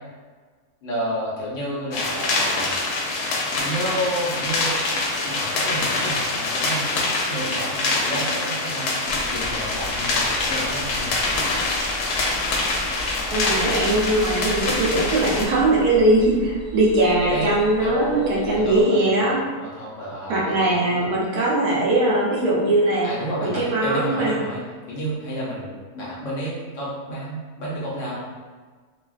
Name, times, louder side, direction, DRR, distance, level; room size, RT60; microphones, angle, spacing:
voice 1, 0.8-2.8 3.6-4.7 5.2-8.9 9.3-11.1 13.8-14.0 17.3-17.5 17.7-18.8 19.6-21.1 23.0-24.6 24.9-28.3, right 1 dB, 60° left, -7 dB, 1.0 m, -30 dB
sound 1, 1.9-15.5, left 2 dB, 85° left, 1.1 m, -25 dB
sound 2, 9.1-18.8, equal, 15° right, 0.9 m, -37 dB
voice 2, 13.3-19.4 20.3-23.1 23.4-24.4, right 1 dB, 80° right, -4 dB, 1.2 m, -20 dB
3.3 x 2.3 x 2.3 m, 1.5 s
omnidirectional pair, 1.6 m